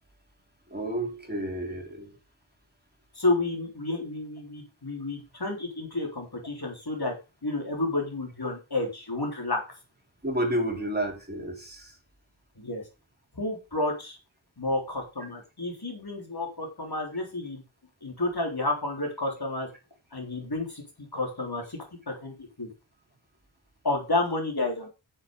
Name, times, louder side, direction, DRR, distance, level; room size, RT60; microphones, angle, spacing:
voice 1, 0.7-2.2 10.2-12.0, right 1 dB, 20° right, 1 dB, 3.8 m, -31 dB
voice 2, 3.2-7.1 7.4-9.6 12.6-12.8 13.3-14.2 14.6-17.6 18.0-19.7 20.1-22.7 23.8-24.9, left 2 dB, 50° left, 2 dB, 3.6 m, -30 dB
7.7 x 7.3 x 5.3 m, 0.30 s
wide cardioid pair, 45°, 47 cm